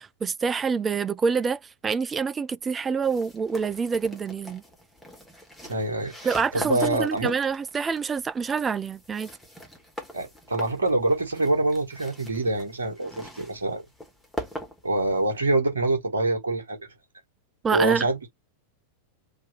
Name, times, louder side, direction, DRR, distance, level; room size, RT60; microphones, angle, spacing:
voice 1, 0.0-4.6 6.2-9.3 17.6-18.1, right 5 dB, 20° right, 0.3 m, -26 dB
sound 1, 3.0-15.6, equal, ahead, 1.6 m, -42 dB
voice 2, 5.7-7.3 10.1-13.8 14.8-16.8 17.7-18.3, right 2 dB, 70° right, 1.5 m, -25 dB
3.5 x 2.8 x 4.3 m
figure-of-eight pair, 90°, 0 cm